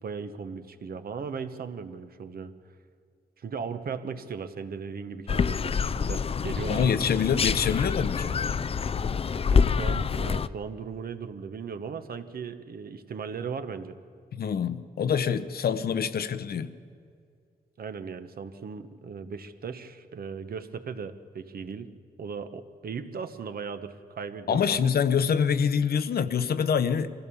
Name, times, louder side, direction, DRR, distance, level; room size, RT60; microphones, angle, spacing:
voice 1, 0.0-2.5 3.4-6.9 9.5-14.0 17.8-21.9 22.2-24.8, right 6 dB, 60° right, 9 dB, 1.2 m, -37 dB
sound 1, 5.3-10.5, left 6 dB, 35° left, 0.4 m, -26 dB
voice 2, 6.7-8.4 14.3-16.7 24.5-27.1, left 7 dB, 65° left, 12 dB, 0.9 m, -25 dB
23.5 x 16.0 x 7.1 m, 2.3 s
wide cardioid pair, 125°, 17 cm